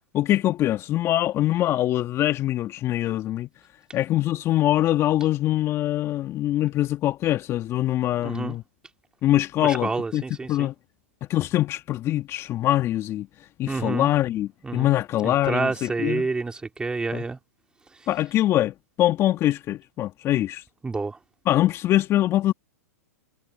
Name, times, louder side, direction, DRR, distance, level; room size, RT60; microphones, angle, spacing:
voice 1, 0.1-3.5 3.9-8.6 9.2-10.2 10.5-10.7 11.3-13.3 13.6-16.3 17.1-17.2 18.1-20.6 21.5-22.5, left 14 dB, 35° left, 1.5 m, -23 dB
voice 2, 8.2-8.6 9.6-10.7 13.7-14.1 14.6-14.9 15.2-17.4 20.8-21.2, right 3 dB, 10° right, 3.3 m, -29 dB
hypercardioid pair, 110°, 8 cm